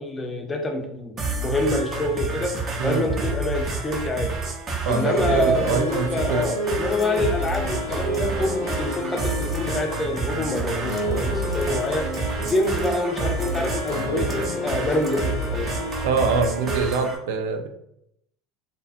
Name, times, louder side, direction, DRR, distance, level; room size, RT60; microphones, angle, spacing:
voice 1, 0.0-4.3 4.9-15.8, left 1 dB, 20° left, 3 dB, 0.5 m, -26 dB
sound 1, 1.2-17.2, right 3 dB, 35° right, 0.6 m, -29 dB
voice 2, 4.8-6.4 16.0-17.7, right 5 dB, 85° right, 5 dB, 0.4 m, -24 dB
sound 2, 4.9-16.9, equal, 85° left, 0.7 m, -31 dB
sound 3, 4.9-6.2 7.0-7.6 8.1-8.4 8.7-8.8 9.1-9.6 10.2-11.3 11.5-12.9 13.3-14.4 15.0-15.2, right 3 dB, 15° right, 0.9 m, -40 dB
2.7 x 2.3 x 2.4 m, 0.78 s
supercardioid pair, 105°, 0 cm